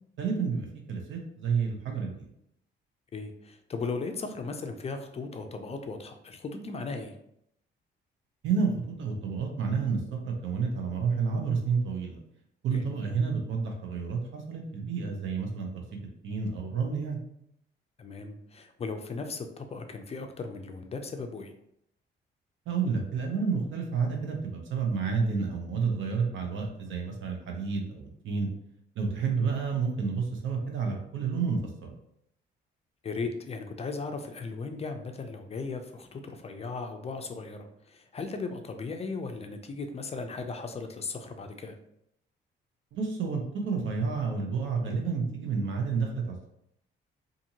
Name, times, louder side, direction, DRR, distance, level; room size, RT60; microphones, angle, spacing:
voice 1, 0.2-2.3 8.4-12.2 12.6-17.2 22.7-28.5 29.0-31.6 42.9-46.5, right 5 dB, 75° right, 2 dB, 0.7 m, -30 dB
voice 2, 3.1-7.1 12.7-12.8 18.0-21.5 29.5-29.6 33.0-41.8, left 4 dB, 30° left, 6 dB, 0.4 m, -37 dB
2.7 x 2.5 x 2.7 m, 0.74 s
cardioid pair, 90°, 20 cm